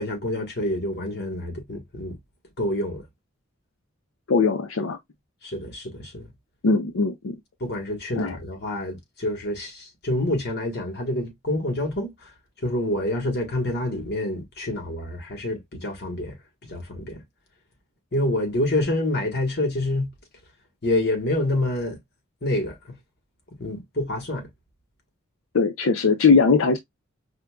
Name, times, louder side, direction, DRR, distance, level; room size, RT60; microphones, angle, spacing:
voice 1, 0.0-2.2 2.6-3.0 5.4-6.3 7.6-12.1 12.6-16.4 16.7-17.2 18.1-20.1 20.8-22.0 22.4-22.8 23.6-24.5, left 1 dB, 55° left, 1.4 m, -27 dB
voice 2, 4.3-5.0 6.6-7.4 8.2-8.4 25.5-26.8, left 4 dB, 85° left, 0.6 m, -20 dB
4.9 x 2.2 x 2.3 m
head